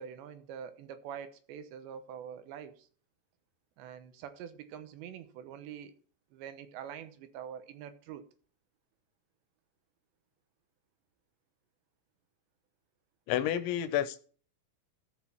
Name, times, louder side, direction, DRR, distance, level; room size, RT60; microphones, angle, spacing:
voice 1, 0.0-2.9 3.8-5.9 6.3-8.2, right 8 dB, 75° right, 3.0 m, -45 dB
voice 2, 13.3-14.2, left 11 dB, 80° left, 3.0 m, -30 dB
14.5 x 6.3 x 4.5 m
omnidirectional pair, 5.4 m